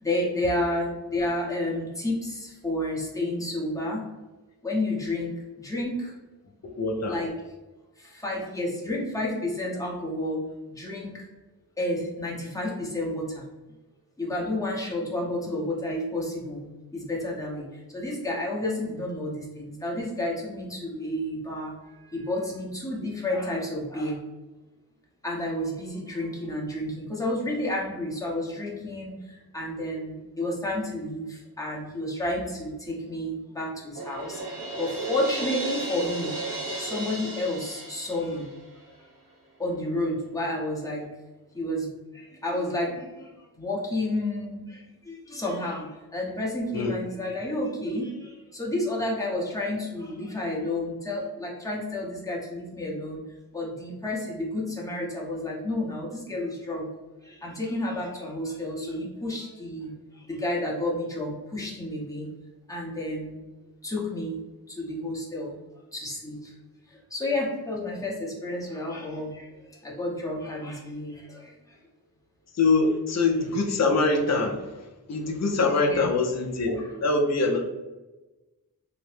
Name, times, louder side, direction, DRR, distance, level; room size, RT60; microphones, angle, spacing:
voice 1, 0.0-4.0 4.6-5.3 5.6-6.1 7.1-7.3 8.0-10.4 10.7-11.3 11.8-13.4 14.2-16.7 16.9-24.2 25.2-34.4 34.8-36.3 36.8-38.5 39.6-41.0 41.5-43.3 43.5-53.2 53.5-56.9 57.2-62.3 62.7-63.3 63.8-64.4 64.7-65.5 65.9-66.5 66.9-71.8 75.9-76.1 76.8-76.9 77.5-77.6, left 1 dB, 10° left, -4 dB, 0.8 m, -31 dB
voice 2, 6.7-7.2 46.7-46.9 72.6-74.6 75.1-77.6, left 3 dB, 45° left, 1 dB, 0.5 m, -24 dB
Crash cymbal, 34.0-38.9, right 2 dB, 60° right, 0.8 m, -35 dB
2.8 x 2.0 x 3.2 m, 1.1 s
wide cardioid pair, 75°, 38 cm